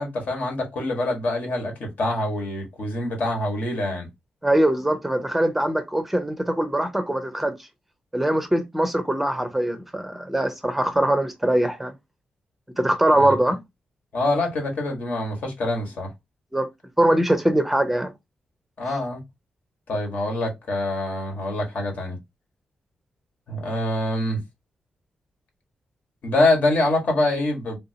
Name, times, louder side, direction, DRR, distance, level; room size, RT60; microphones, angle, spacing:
voice 1, 0.0-4.1 13.2-13.3 14.1-16.1 18.8-19.2 19.9-22.2 23.5-24.4 26.2-27.8, left 2 dB, 65° left, 1.4 m, -25 dB
voice 2, 4.4-7.7 8.1-11.9 12.8-13.6 16.5-16.7 17.0-18.1, right 1 dB, 5° right, 0.5 m, -22 dB
3.4 x 2.7 x 2.7 m
cardioid pair, 105°, 3 cm